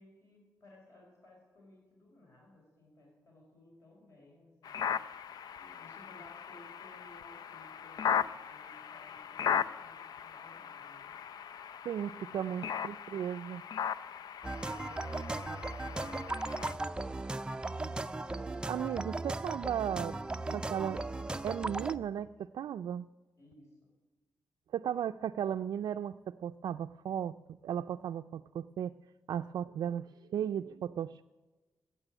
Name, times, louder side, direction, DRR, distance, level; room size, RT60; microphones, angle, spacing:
voice 1, 0.0-4.8 5.5-11.1 12.2-12.7 14.6-17.5 23.4-23.9, left 1 dB, 45° left, -2 dB, 5.5 m, -58 dB
sound 1, 4.6-16.7, left 8 dB, 70° left, 0.5 m, -38 dB
voice 2, 11.8-13.6 18.5-20.2 20.5-21.0 21.4-23.1 24.7-29.0 29.3-31.2, right 9 dB, 80° right, 6 dB, 0.4 m, -36 dB
sound 2, 14.4-22.0, right 2 dB, 15° right, 0.5 m, -37 dB
15.0 x 8.9 x 8.9 m, 1.2 s
wide cardioid pair, 135°, 7 cm